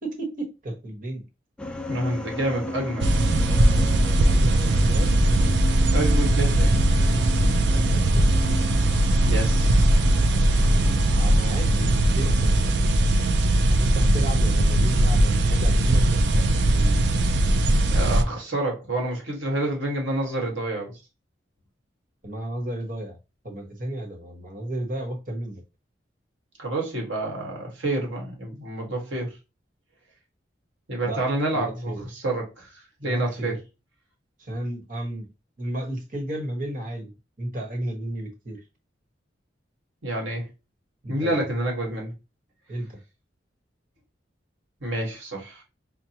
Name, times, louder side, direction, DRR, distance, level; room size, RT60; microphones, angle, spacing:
voice 1, 0.0-1.2 4.2-5.2 7.7-8.5 11.1-13.0 13.7-17.0 22.2-23.2 23.4-25.6 31.0-31.2 31.5-32.0 33.0-33.6 34.4-35.3 35.6-37.1 37.4-38.6 41.0-41.5 42.7-43.0, right 1 dB, 45° right, 1.2 m, -33 dB
sound 1, 1.6-12.5, left 1 dB, 5° left, 0.4 m, -35 dB
voice 2, 1.9-3.0 5.9-6.7 9.3-9.8 17.8-21.0 26.6-29.3 30.9-33.6 40.0-40.5 41.1-42.1 44.8-45.6, right 1 dB, 85° right, 1.4 m, -28 dB
sound 2, 3.0-18.2, right 1 dB, 65° right, 0.5 m, -20 dB
5.7 x 2.2 x 2.8 m
head